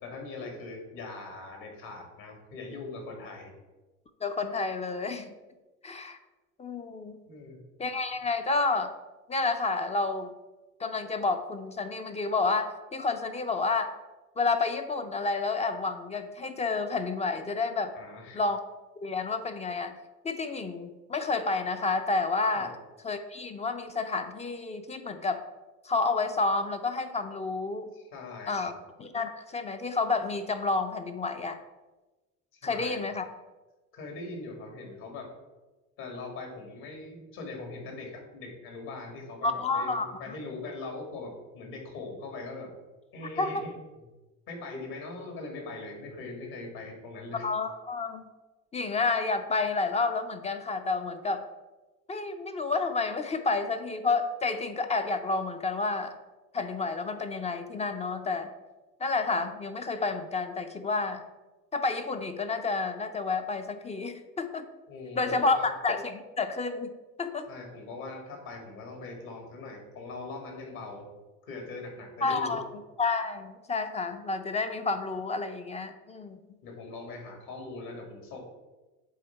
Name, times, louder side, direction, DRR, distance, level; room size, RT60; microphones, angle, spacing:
voice 1, 0.0-3.5 7.3-7.6 17.9-18.4 22.5-22.7 27.9-28.8 32.5-33.0 33.9-35.3 36.0-42.7 43.1-43.7 44.5-47.5 64.9-65.7 67.5-71.1 71.4-72.6 76.6-78.4, left 3 dB, 65° left, 2 dB, 2.2 m, -41 dB
voice 2, 4.2-5.3 5.8-6.2 6.6-7.2 7.8-8.9 9.3-10.3 10.8-13.9 14.4-17.9 18.3-18.6 19.0-19.9 20.2-22.7 23.0-25.4 25.8-27.9 28.5-28.7 29.0-31.6 32.6-33.3 39.4-40.3 43.4-43.7 47.4-48.2 48.7-51.5 52.1-56.2 56.5-58.5 59.0-61.2 61.7-64.7 65.2-66.9 67.2-67.5 72.2-72.6 73.0-76.4, left 3 dB, 20° left, 9 dB, 0.4 m, -30 dB
8.0 x 3.5 x 4.5 m, 1.2 s
supercardioid pair, 100°, 38 cm